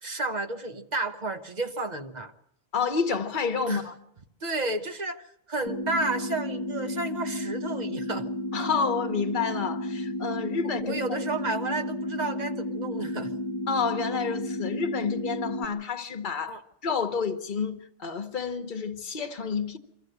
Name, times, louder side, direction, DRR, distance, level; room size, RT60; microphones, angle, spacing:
voice 1, 0.0-2.3 3.7-3.8 4.4-8.3 10.9-13.3 16.5-16.6, right 2 dB, 40° right, 1.1 m, -32 dB
voice 2, 2.7-3.9 8.5-11.0 13.7-19.8, left 5 dB, 45° left, 1.1 m, -29 dB
sound 1, 5.7-15.7, left 1 dB, 25° left, 1.2 m, -32 dB
24.0 x 14.0 x 7.9 m
omnidirectional pair, 1.2 m